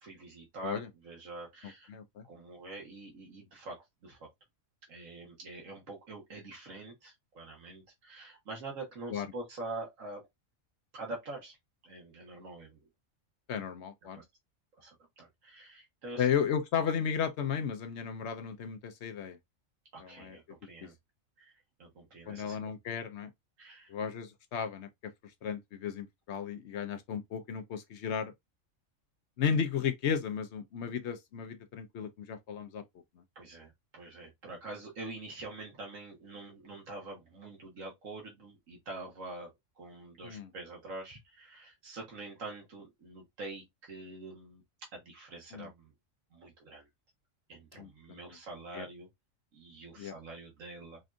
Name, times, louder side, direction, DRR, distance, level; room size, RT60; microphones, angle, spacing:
voice 1, 0.0-1.9 2.3-4.3 4.9-10.3 10.9-11.6 11.8-12.8 14.1-14.2 14.8-16.3 19.9-20.9 21.4-21.5 21.8-22.6 23.6-23.9 33.4-44.6 44.9-45.9 46.3-46.9 47.5-49.1 49.5-51.0, right 2 dB, 90° right, 1.7 m, -45 dB
voice 2, 1.9-2.2 9.1-9.3 13.5-14.2 16.2-19.4 20.0-20.4 20.8-20.9 22.3-23.3 23.9-25.1 25.4-28.3 29.4-32.8 40.2-40.5 45.5-45.7 47.8-48.4 48.7-48.9 50.0-50.1, left 7 dB, 65° left, 1.0 m, -34 dB
5.2 x 2.4 x 2.6 m
omnidirectional pair, 1.3 m